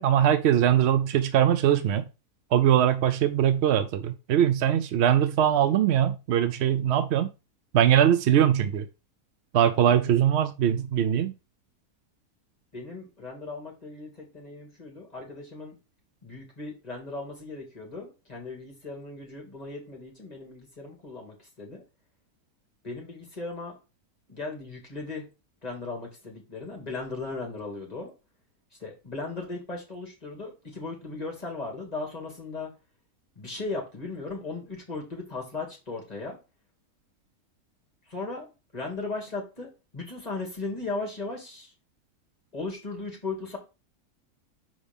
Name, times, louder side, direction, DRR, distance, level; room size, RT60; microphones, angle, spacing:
voice 1, 0.0-2.0 2.5-7.3 7.7-8.9 9.5-11.3, right 10 dB, 70° right, 0.6 m, -22 dB
voice 2, 12.7-15.7 16.2-21.8 22.8-23.8 24.3-25.2 25.6-28.1 28.8-32.7 33.4-36.4 38.1-41.7 42.5-43.6, left 3 dB, 25° left, 2.2 m, -37 dB
6.3 x 5.0 x 3.5 m
omnidirectional pair, 1.6 m